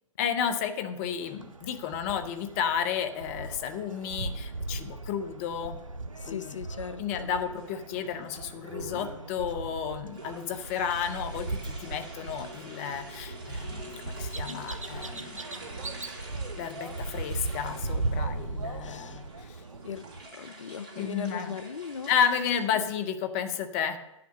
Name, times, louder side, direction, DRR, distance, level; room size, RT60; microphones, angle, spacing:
voice 1, 0.2-5.8 6.3-6.6 7.0-15.4 16.6-19.6 21.0-21.5 22.1-24.0, left 8 dB, 25° left, 8 dB, 0.7 m, -32 dB
sound 1, 1.2-20.3, right 3 dB, 80° right, 0.8 m, -38 dB
voice 2, 6.2-7.3 18.8-19.2 19.8-20.1 20.3-22.1 22.7-22.9, left 6 dB, 70° left, 14 dB, 0.5 m, -38 dB
sound 2, 7.5-8.2 8.6-9.3 10.1-22.6, right 1 dB, 40° right, 2.9 m, -46 dB
10.0 x 5.8 x 6.4 m, 0.92 s
figure-of-eight pair, 130°, 17 cm